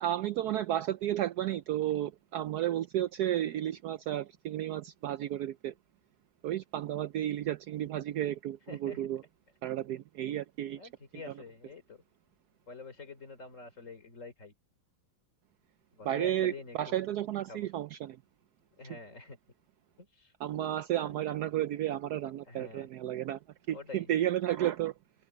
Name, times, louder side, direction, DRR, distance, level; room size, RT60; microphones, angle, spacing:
voice 1, 0.0-5.7 6.4-9.2 9.6-10.8 16.0-18.2 20.4-23.4 23.7-24.9, right 12 dB, 90° right, 0.8 m, -32 dB
voice 2, 8.7-9.0 10.7-12.0 12.7-14.5 15.9-17.0 17.5-17.7 18.8-19.4 20.0-20.3 21.0-21.2 22.5-22.9 23.7-24.1, left 4 dB, 35° left, 3.4 m, -47 dB
omnidirectional pair, 2.3 m